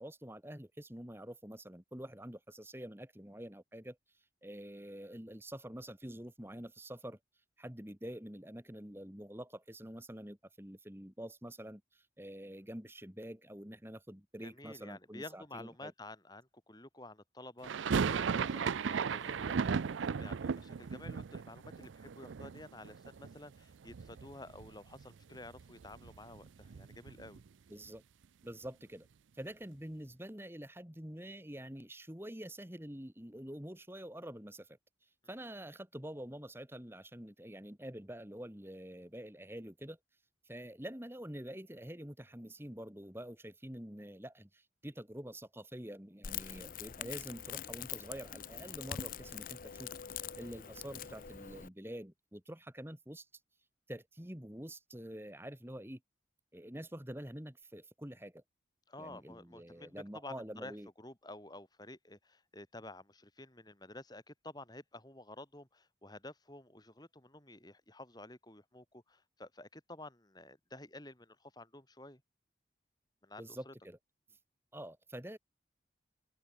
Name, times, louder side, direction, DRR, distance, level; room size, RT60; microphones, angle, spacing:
voice 1, 0.0-4.0 4.4-7.2 7.6-15.9 27.7-28.0 28.4-29.1 29.3-34.8 35.3-40.0 40.5-53.3 53.9-56.0 56.5-58.4 59.0-60.9 73.4-74.0 74.7-75.4, right 1 dB, 10° right, 2.1 m, -47 dB
voice 2, 14.4-27.4 58.9-72.2 73.2-73.7, left 2 dB, 20° left, 5.3 m, -51 dB
sound 1, 17.6-23.6 23.8-24.7 25.0-25.1 25.3-27.5, right 6 dB, 85° right, 0.5 m, -36 dB
Crackle, 46.2-51.7, left 9 dB, 45° left, 0.6 m, -44 dB
open air
head